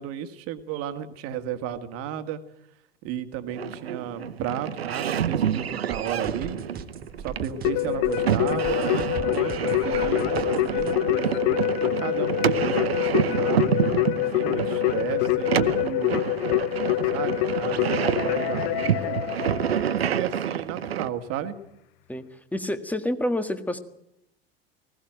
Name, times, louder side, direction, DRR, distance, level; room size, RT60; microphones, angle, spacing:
voice 1, 0.0-2.4 3.0-6.6 7.2-13.8 14.3-16.2 17.1-19.2 19.8-21.6, right 9 dB, 50° right, 9 dB, 1.9 m, -34 dB
sound 1, 3.5-21.1, right 9 dB, 80° right, 0.8 m, -28 dB
sound 2, 5.9-10.9, right 6 dB, 30° right, 1.4 m, -39 dB
Keyboard (musical), 7.6-20.1, left 18 dB, 50° left, 0.8 m, -26 dB
voice 2, 14.1-14.4 22.1-23.8, left 1 dB, 5° left, 10 dB, 1.6 m, -29 dB
19.5 x 16.0 x 9.0 m, 0.81 s
figure-of-eight pair, 75°, 31 cm